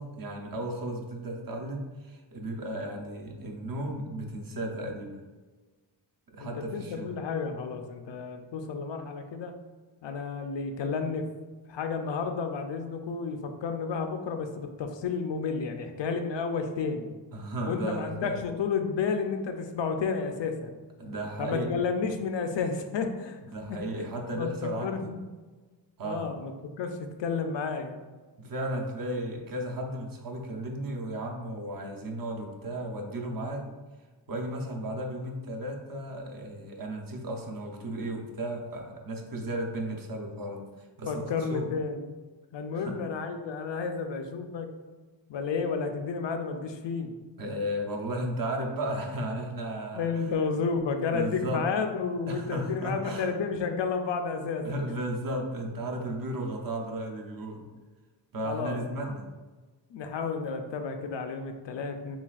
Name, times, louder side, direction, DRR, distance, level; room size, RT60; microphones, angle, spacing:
voice 1, 0.0-5.2 6.3-7.1 17.3-18.4 21.0-21.8 23.4-25.0 26.0-26.3 28.4-33.7 34.3-41.7 42.7-42.9 47.4-50.1 51.1-51.7 52.3-53.3 54.6-57.7 58.3-59.2, right 1 dB, 50° right, 2 dB, 0.7 m, -34 dB
voice 2, 6.4-9.5 10.0-11.2 11.7-17.1 17.7-20.7 21.4-24.1 24.3-25.3 26.0-28.0 41.1-42.2 42.5-44.7 45.3-47.2 49.9-54.7 58.4-59.1 59.9-62.2, left 5 dB, 75° left, 6 dB, 0.6 m, -31 dB
7.1 x 2.4 x 2.4 m, 1.3 s
wide cardioid pair, 145°, 44 cm